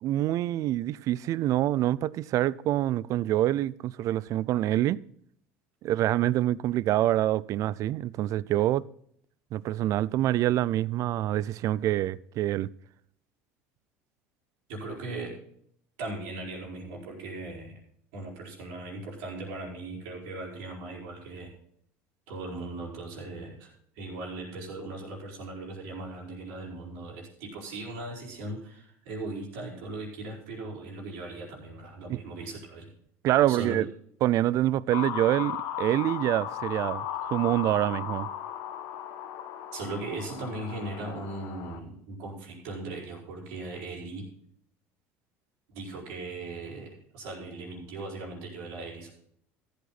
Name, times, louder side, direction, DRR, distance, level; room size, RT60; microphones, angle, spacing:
voice 1, 0.0-5.0 5.8-8.8 9.5-12.7 32.1-32.2 33.2-33.9 34.2-38.3, right 13 dB, 55° right, 0.4 m, -26 dB
voice 2, 14.7-15.4 16.0-17.7 18.1-21.5 22.3-32.9 33.5-33.7 39.7-44.3 45.7-49.1, right 2 dB, 80° right, 4.4 m, -38 dB
sound 1, 34.9-41.8, left 10 dB, 75° left, 1.4 m, -36 dB
14.0 x 8.5 x 4.1 m
supercardioid pair, 95°, 7 cm